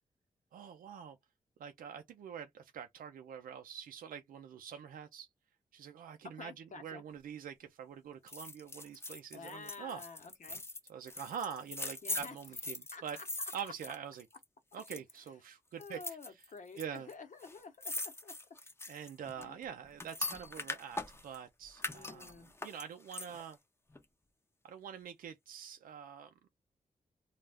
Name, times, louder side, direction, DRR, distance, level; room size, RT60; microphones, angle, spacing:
voice 1, 0.5-1.2 1.6-5.3 5.7-6.5 6.8-10.0 10.9-13.2 13.5-14.2 14.7-16.0 16.8-17.1 18.9-23.6 24.6-26.3, right 8 dB, 85° right, 0.4 m, -45 dB
voice 2, 6.3-7.0 9.3-10.6 12.0-12.4 12.9-13.2 13.6-13.7 14.7-14.8 15.8-18.4 19.3-19.7 21.9-22.5, left 4 dB, 60° left, 0.9 m, -50 dB
sound 1, 8.3-14.4 14.7-15.3 15.8-16.8 17.1-17.2 17.4-21.4 21.8-23.5 23.9-24.0, left 2 dB, 20° left, 0.6 m, -42 dB
2.3 x 2.0 x 3.3 m
cardioid pair, 60°, 14 cm